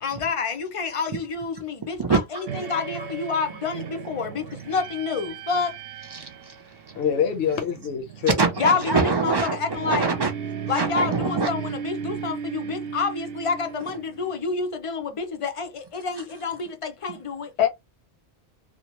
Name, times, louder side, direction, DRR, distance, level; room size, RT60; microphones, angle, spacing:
voice 1, 0.0-2.2 2.6-5.8 8.6-10.1 10.7-17.5, left 5 dB, 50° left, 0.4 m, -28 dB
voice 2, 2.0-4.6 5.5-5.6 6.1-7.1 7.4-7.6 8.2-10.3 10.7-11.5 16.2-16.3, right 4 dB, 45° right, 0.3 m, -27 dB
sound 1, 2.5-14.5, right 7 dB, 65° right, 0.7 m, -36 dB
voice 3, 6.9-8.4 17.6-17.7, left 8 dB, 75° left, 0.8 m, -24 dB
2.7 x 2.0 x 2.8 m
omnidirectional pair, 1.1 m